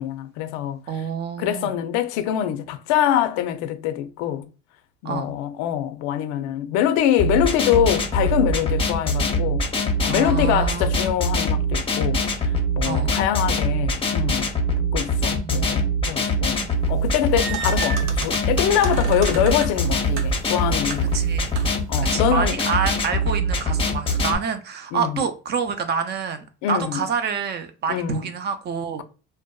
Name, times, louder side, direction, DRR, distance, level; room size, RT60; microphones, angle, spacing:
voice 1, 0.0-0.8 1.4-4.5 5.0-9.6 10.0-12.2 12.8-14.5 14.9-16.6 16.9-21.1 21.9-22.6 24.9-25.2 26.6-27.0 27.9-28.2, left 10 dB, 70° left, 0.5 m, -24 dB
voice 2, 0.9-1.8 5.0-5.3 10.1-10.9 12.9-13.2 15.3-15.9 16.6-16.7 21.1-21.5 22.0-29.0, right 6 dB, 35° right, 0.4 m, -27 dB
sound 1, 7.2-24.3, equal, 20° left, 0.6 m, -23 dB
sound 2, 16.9-21.9, right 4 dB, 80° right, 0.7 m, -34 dB
2.6 x 2.1 x 2.2 m
supercardioid pair, 105°, 29 cm